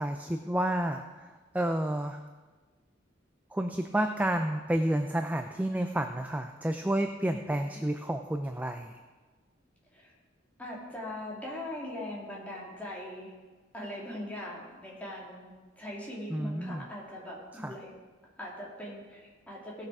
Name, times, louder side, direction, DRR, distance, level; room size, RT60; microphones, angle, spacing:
voice 1, 0.0-2.2 3.5-9.0 16.3-16.8 17.5-17.7, right 1 dB, 10° right, 5 dB, 0.4 m, -30 dB
voice 2, 7.3-7.8 9.9-10.1 10.6-13.3 13.7-17.9 18.4-19.9, left 1 dB, 5° left, -5 dB, 2.8 m, -41 dB
17.0 x 6.6 x 4.8 m, 1.3 s
head